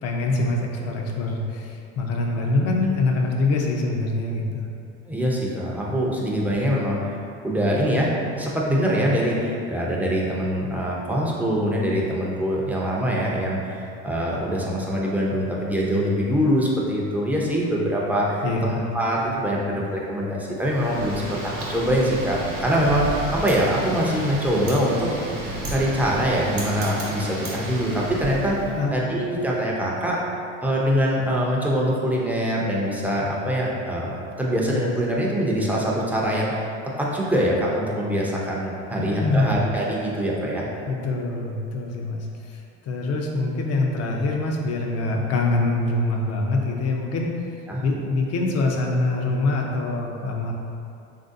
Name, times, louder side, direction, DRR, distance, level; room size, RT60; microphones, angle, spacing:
voice 1, 0.0-4.7 18.4-18.9 28.7-28.9 39.2-39.5 40.9-47.3 47.8-50.5, left 2 dB, 45° left, 0 dB, 0.5 m, -24 dB
voice 2, 5.1-7.0 7.4-23.0 23.3-25.1 25.6-30.2 30.6-36.7 37.0-40.7 47.7-47.8, equal, 5° right, -4 dB, 0.5 m, -24 dB
Wind, 20.6-28.7, right 1 dB, 65° right, 0.9 m, -32 dB
3.3 x 2.6 x 2.5 m, 2.5 s
supercardioid pair, 85°, 34 cm